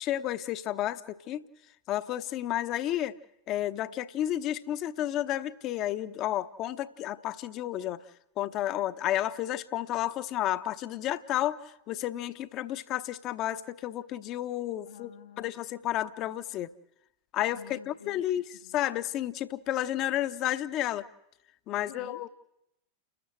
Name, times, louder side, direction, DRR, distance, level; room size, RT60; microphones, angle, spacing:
voice 1, 0.0-1.4 1.9-3.1 3.5-8.0 8.4-11.6 11.9-15.1 15.4-16.7 17.3-18.4 18.7-21.1 21.7-22.3, left 13 dB, 35° left, 13 dB, 1.0 m, -31 dB
voice 2, 14.8-15.5 17.5-18.3 18.6-18.8 21.7-22.3, left 8 dB, 65° left, 5 dB, 1.2 m, -50 dB
30.0 x 13.0 x 8.0 m, 0.84 s
figure-of-eight pair, 90°, 0 cm